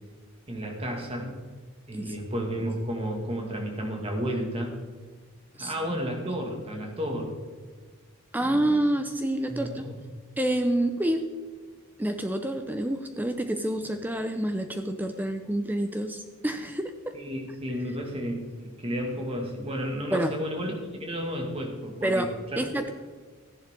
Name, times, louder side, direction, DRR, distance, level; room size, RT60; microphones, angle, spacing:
voice 1, 0.5-1.3 1.9-4.7 5.6-7.3 8.4-8.7 9.5-9.9 17.1-22.6, equal, 25° right, 1 dB, 2.0 m, -32 dB
voice 2, 8.3-9.9 10.4-11.3 12.0-17.2 20.1-20.4 22.0-22.9, right 1 dB, 10° right, 7 dB, 0.5 m, -28 dB
14.5 x 11.0 x 3.7 m, 1.5 s
head